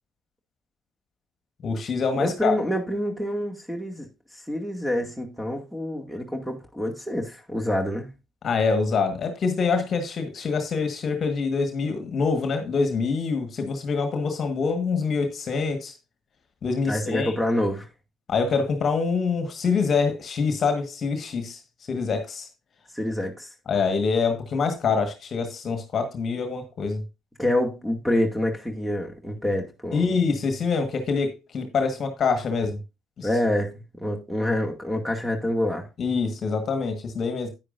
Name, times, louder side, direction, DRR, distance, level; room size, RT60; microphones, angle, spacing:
voice 1, 1.6-2.6 8.4-15.9 16.6-17.3 18.3-21.6 21.9-22.5 23.7-27.0 29.9-32.8 33.2-33.3 36.0-37.5, left 5 dB, 45° left, 1.5 m, -25 dB
voice 2, 2.2-4.1 4.5-8.1 16.9-17.9 22.9-23.5 27.4-30.1 33.2-35.9, left 1 dB, 5° right, 2.2 m, -27 dB
9.9 x 9.6 x 2.6 m
figure-of-eight pair, 50°, 0 cm